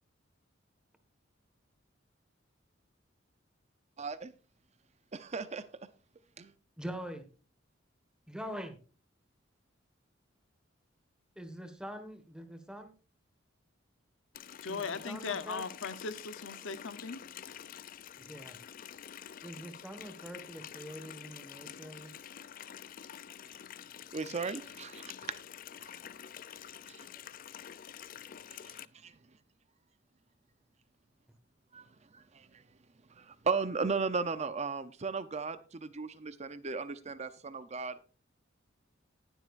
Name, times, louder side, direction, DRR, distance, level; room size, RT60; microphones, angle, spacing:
voice 1, 4.0-4.3 5.1-5.9 6.4-6.5 24.1-25.1 25.8-26.0 26.9-27.1 28.5-29.1 31.7-31.8 32.1-32.6 33.1-38.1, right 4 dB, 35° right, 0.6 m, -36 dB
voice 2, 6.8-7.2 8.3-8.8 11.4-12.9 14.7-15.6 18.2-18.6 19.4-22.1, equal, 5° right, 1.6 m, -44 dB
Water tap faucet, 14.3-28.8, left 9 dB, 45° left, 0.4 m, -48 dB
voice 3, 14.6-17.2, left 5 dB, 80° left, 0.8 m, -38 dB
19.0 x 7.8 x 2.5 m
head